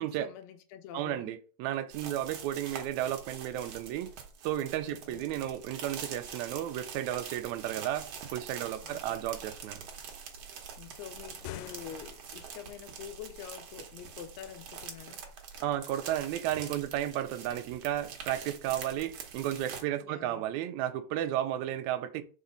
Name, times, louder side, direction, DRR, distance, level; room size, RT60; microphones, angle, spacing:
voice 1, 0.0-1.3 4.8-5.2 8.8-9.2 10.8-15.2 20.0-20.5, left 9 dB, 75° left, 1.7 m, -46 dB
voice 2, 0.9-4.1 4.4-9.8 15.6-22.2, right 12 dB, 75° right, 1.8 m, -33 dB
sound 1, 1.9-19.8, right 6 dB, 60° right, 1.8 m, -45 dB
sound 2, 11.3-12.6, left 13 dB, 90° left, 2.1 m, -46 dB
4.9 x 4.2 x 5.1 m
omnidirectional pair, 3.6 m